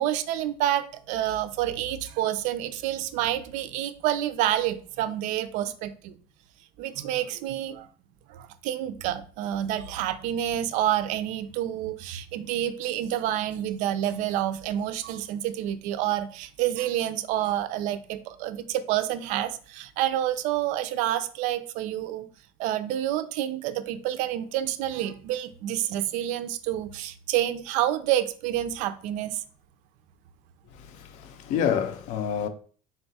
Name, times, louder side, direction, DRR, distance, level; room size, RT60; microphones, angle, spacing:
voice 1, 0.0-6.2 6.8-7.9 8.3-22.3 22.6-29.4, right 12 dB, 60° right, 0.4 m, -28 dB
voice 2, 30.7-32.5, left 8 dB, 55° left, 0.5 m, -28 dB
3.9 x 2.3 x 4.0 m
cardioid pair, 165°, 14 cm